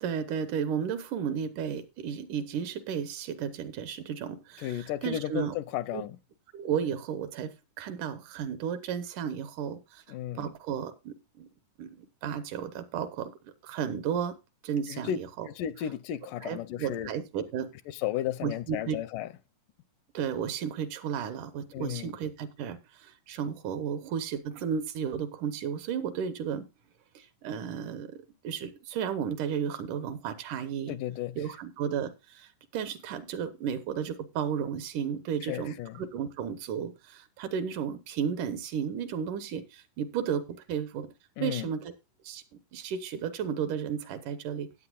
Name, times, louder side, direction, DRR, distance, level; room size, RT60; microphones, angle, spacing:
voice 1, 0.0-5.6 5.9-6.0 6.5-10.0 10.4-11.5 11.8-14.4 14.6-15.5 16.4-17.7 18.4-19.0 20.1-26.7 27.2-28.2 28.4-31.0 31.4-41.1 41.4-41.9 42.2-42.4 42.7-44.7, right 8 dB, 75° right, 2.4 m, -33 dB
voice 2, 4.6-6.2 10.1-10.5 14.9-15.2 15.5-17.1 17.9-19.3 21.7-22.2 30.9-31.4 35.4-36.0 41.4-41.7, left 11 dB, 80° left, 2.2 m, -34 dB
16.0 x 9.0 x 2.3 m
omnidirectional pair, 3.8 m